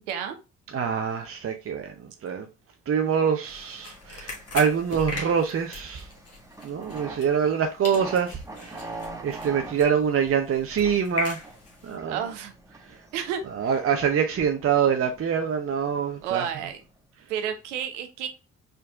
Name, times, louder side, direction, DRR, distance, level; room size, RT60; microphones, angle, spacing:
voice 1, 0.7-2.5 2.9-6.1 6.6-11.4 11.8-12.2 12.8-13.0 13.5-16.5, right 7 dB, 40° right, 0.7 m, -25 dB
sound 1, 3.1-17.0, right 2 dB, 10° right, 1.1 m, -45 dB
sound 2, 3.4-7.6 7.8-11.9, left 3 dB, 40° left, 1.7 m, -38 dB
voice 2, 12.1-12.5 13.1-13.4 16.2-16.8 17.3-18.4, right 9 dB, 80° right, 0.7 m, -30 dB
4.3 x 3.9 x 2.3 m
hypercardioid pair, 40°, 35 cm